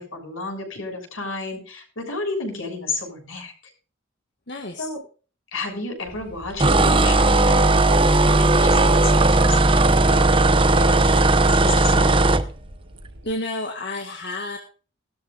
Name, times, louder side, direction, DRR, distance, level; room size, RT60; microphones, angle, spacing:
voice 1, 0.0-3.5 4.8-5.0 5.5-12.1, left 2 dB, 75° left, 2 dB, 6.7 m, -31 dB
voice 2, 4.5-4.9 13.2-14.6, left 2 dB, 55° left, 3 dB, 1.8 m, -30 dB
Wind, 6.0-13.3, right 1 dB, 70° right, 4.5 m, -43 dB
sound 1, 6.6-12.4, right 2 dB, 25° right, 0.9 m, -17 dB
19.5 x 13.0 x 2.5 m, 0.37 s
head